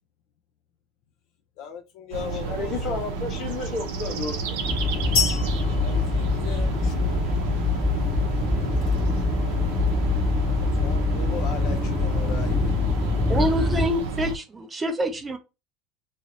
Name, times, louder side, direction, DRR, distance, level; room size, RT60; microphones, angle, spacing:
voice 1, 1.6-3.2 5.8-7.3 10.5-13.1, left 7 dB, 65° left, 0.5 m, -38 dB
sound 1, 2.1-14.4, right 4 dB, 80° right, 0.7 m, -31 dB
voice 2, 2.3-4.6, left 3 dB, 45° left, 1.4 m, -32 dB
sound 2, 4.6-13.9, left 4 dB, 25° left, 0.8 m, -24 dB
sound 3, 5.2-7.1, left 5 dB, 80° left, 1.3 m, -28 dB
voice 3, 13.3-15.4, right 1 dB, 20° right, 0.6 m, -26 dB
2.9 x 2.8 x 2.8 m
hypercardioid pair, 90°, 0 cm